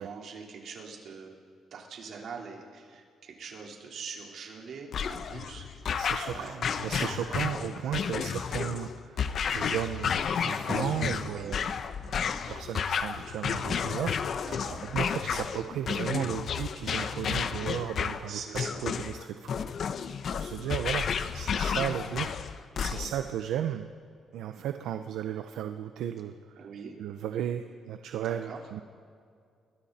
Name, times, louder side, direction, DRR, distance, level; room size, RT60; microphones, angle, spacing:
voice 1, 0.0-1.4 1.7-6.1 6.3-6.5 6.9-7.4 11.2-11.6 14.4-14.8 18.3-18.9 26.6-27.0 28.2-28.6, right 5 dB, 65° right, -1 dB, 4.3 m, -43 dB
sound 1, 4.9-23.3, left 7 dB, 60° left, 1.0 m, -32 dB
voice 2, 5.9-11.7 12.5-14.2 14.8-19.6 20.3-21.1 21.3-23.9 24.3-26.7 27.0-28.8, right 10 dB, 85° right, 7 dB, 0.8 m, -35 dB
30.0 x 22.0 x 4.4 m, 2.2 s
cardioid pair, 90°, 0 cm